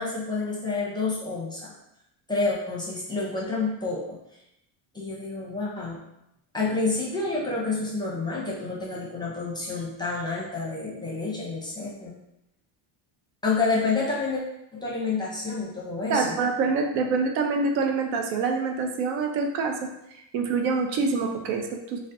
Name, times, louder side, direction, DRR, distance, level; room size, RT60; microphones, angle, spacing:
voice 1, 0.0-1.7 2.3-4.2 4.9-6.0 6.5-12.1 13.4-14.4 14.7-16.4, left 3 dB, 10° left, -5 dB, 0.6 m, -29 dB
voice 2, 16.1-19.8 20.3-22.1, right 4 dB, 75° right, 4 dB, 0.6 m, -26 dB
4.0 x 2.1 x 2.5 m, 0.82 s
cardioid pair, 135°, 45 cm